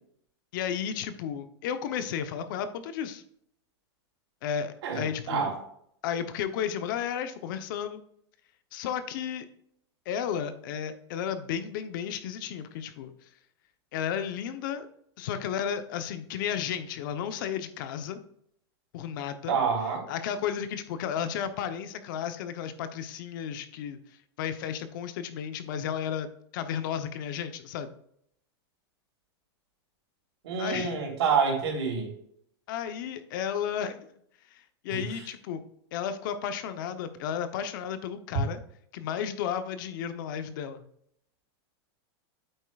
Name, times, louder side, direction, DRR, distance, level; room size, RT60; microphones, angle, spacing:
voice 1, 0.5-3.2 4.4-5.5 6.0-8.0 8.7-9.4 10.1-13.1 13.9-14.9 15.2-18.2 18.9-19.6 20.1-24.0 24.4-26.3 26.5-27.9 30.6-31.0 32.7-34.1 34.8-35.6 35.9-38.6 38.9-40.8, left 8 dB, 50° left, 10 dB, 0.8 m, -33 dB
voice 2, 4.8-5.5 19.5-20.1 30.4-32.1 34.9-35.2, right 6 dB, 90° right, 0 dB, 3.4 m, -28 dB
8.8 x 8.0 x 2.4 m, 0.69 s
supercardioid pair, 170°, 14 cm